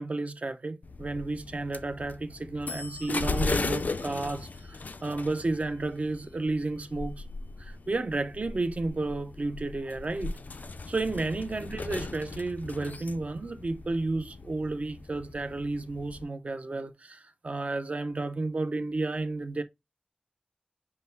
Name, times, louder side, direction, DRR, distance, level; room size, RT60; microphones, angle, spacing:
voice 1, 0.0-7.2 7.6-10.4 10.9-19.6, right 2 dB, 50° right, 0.5 m, -32 dB
sound 1, 0.8-16.2, left 3 dB, 70° left, 0.4 m, -37 dB
5.6 x 2.1 x 3.3 m
wide cardioid pair, 65°, 3 cm